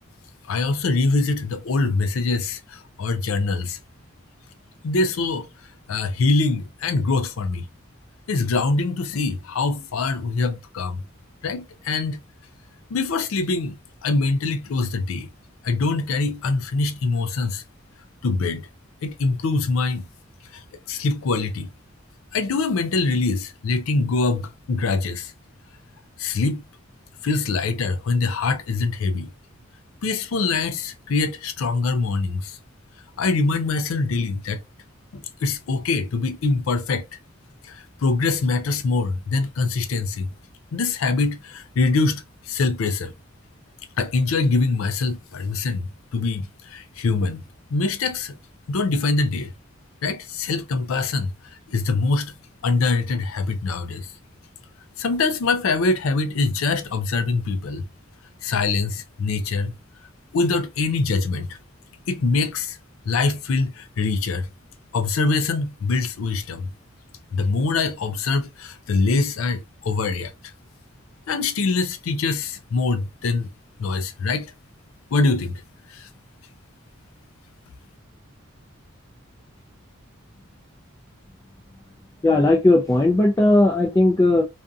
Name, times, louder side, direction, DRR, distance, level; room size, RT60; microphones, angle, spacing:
voice 1, 0.5-3.8 4.8-5.5 5.9-7.7 8.3-11.0 11.4-12.2 12.9-13.8 14.0-15.3 15.6-17.6 18.2-18.7 19.0-20.0 20.5-21.7 22.3-25.3 26.2-26.6 27.2-29.3 30.0-32.6 33.2-34.6 35.1-37.1 37.6-40.3 40.7-43.1 44.0-47.4 47.7-48.4 48.7-49.5 50.0-51.3 51.7-52.3 52.6-54.1 55.0-57.9 58.4-59.7 60.3-61.6 62.1-62.8 63.1-64.5 64.9-66.7 67.3-70.5 71.3-73.5 73.8-74.5 75.1-75.6 75.9-76.1, left 3 dB, 90° left, 0.4 m, -24 dB
voice 2, 82.2-84.4, left 2 dB, 15° left, 0.3 m, -17 dB
2.5 x 2.5 x 2.3 m
head